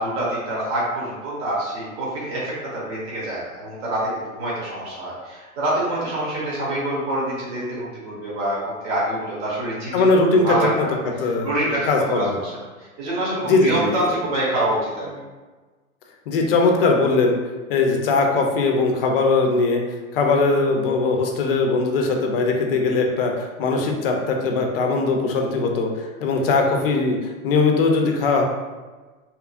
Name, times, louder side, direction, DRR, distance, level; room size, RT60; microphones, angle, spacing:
voice 1, 0.0-10.7 11.1-12.5 13.0-15.1, right 1 dB, 45° right, -6 dB, 1.1 m, -26 dB
voice 2, 9.9-10.5 11.2-12.4 13.4-14.0 15.1-15.2 16.3-17.4 17.7-19.8 20.1-28.4, left 3 dB, 45° left, 2 dB, 0.4 m, -20 dB
2.9 x 2.3 x 2.4 m, 1.3 s
hypercardioid pair, 140°, 42 cm